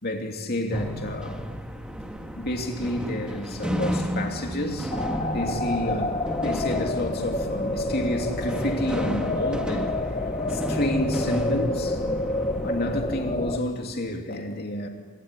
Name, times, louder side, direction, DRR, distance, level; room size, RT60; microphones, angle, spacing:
voice 1, 0.0-1.5 2.3-5.0 5.3-9.9 10.5-12.0 12.6-14.9, left 1 dB, 45° left, 2.9 m, -30 dB
sound 1, 0.7-13.0, equal, 5° right, 1.7 m, -33 dB
sound 2, 4.9-13.6, left 2 dB, 25° left, 1.3 m, -28 dB
26.5 x 22.0 x 9.9 m
head